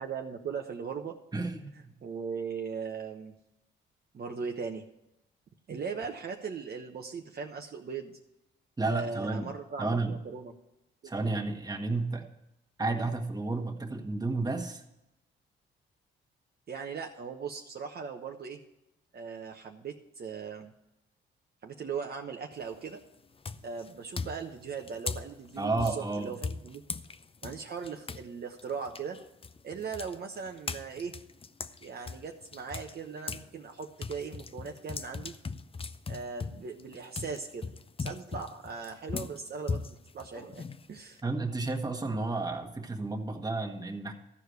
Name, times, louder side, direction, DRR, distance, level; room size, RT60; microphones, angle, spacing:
voice 1, 0.0-1.1 2.0-3.3 4.1-4.8 5.7-8.2 8.8-10.5 11.0-11.2 16.7-18.6 19.1-20.7 21.6-23.0 23.6-26.8 27.4-29.2 29.6-31.1 31.8-35.3 36.1-37.7 38.0-41.2, right 5 dB, 50° right, 2 dB, 1.0 m, -39 dB
voice 2, 1.3-1.9 8.8-9.5 9.8-10.1 11.0-12.2 12.8-14.8 25.6-26.3 41.2-44.1, right 3 dB, 20° right, 3 dB, 1.6 m, -31 dB
sound 1, 22.5-22.9 23.4-28.3 28.6-33.5 33.8-41.2, left 4 dB, 25° left, 0.6 m, -39 dB
13.5 x 4.9 x 8.1 m, 0.90 s
cardioid pair, 80°, 20 cm